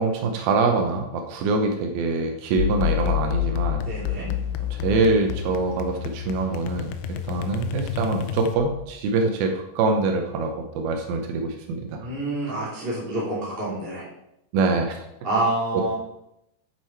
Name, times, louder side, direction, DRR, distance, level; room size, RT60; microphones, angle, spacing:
voice 1, 0.0-3.8 4.7-12.1 14.5-15.1 15.7-15.8, right 3 dB, 85° right, 4 dB, 2.7 m, -24 dB
sound 1, 2.6-8.9, left 12 dB, 80° left, 2.2 m, -29 dB
voice 2, 3.8-4.3 12.0-14.1 15.2-15.9, right 2 dB, 15° right, -8 dB, 2.5 m, -27 dB
7.6 x 7.2 x 4.6 m, 0.82 s
omnidirectional pair, 4.3 m